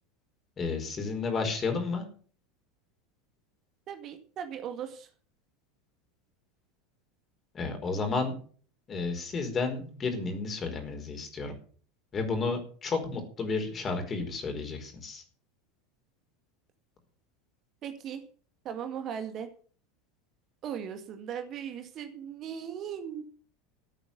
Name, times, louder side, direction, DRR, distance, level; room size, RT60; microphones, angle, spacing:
voice 1, 0.6-2.0 7.5-8.3 8.9-11.5 12.1-15.2, left 4 dB, 25° left, 5 dB, 4.9 m, -32 dB
voice 2, 3.9-5.1 17.8-18.2 18.6-19.5 20.6-23.2, right 8 dB, 40° right, 7 dB, 2.0 m, -38 dB
14.5 x 8.9 x 7.0 m, 0.44 s
figure-of-eight pair, 80°, 0 cm